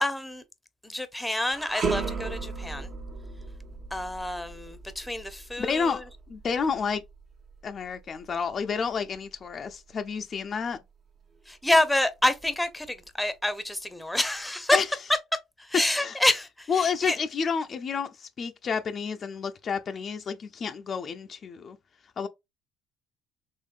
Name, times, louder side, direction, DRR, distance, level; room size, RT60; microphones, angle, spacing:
voice 1, 0.0-0.4 0.8-2.9 3.9-6.0 11.5-14.8 15.7-17.2, left 1 dB, 5° left, 0.7 m, -27 dB
sound 1, 1.5-10.8 11.2-11.4 12.2-13.1, right 4 dB, 45° right, 0.9 m, -37 dB
voice 2, 5.6-7.0 7.6-10.8 14.7-14.9 16.0-16.2 16.7-21.8 22.2-22.3, left 6 dB, 45° left, 0.4 m, -30 dB
3.6 x 3.1 x 2.4 m
supercardioid pair, 90°, 0 cm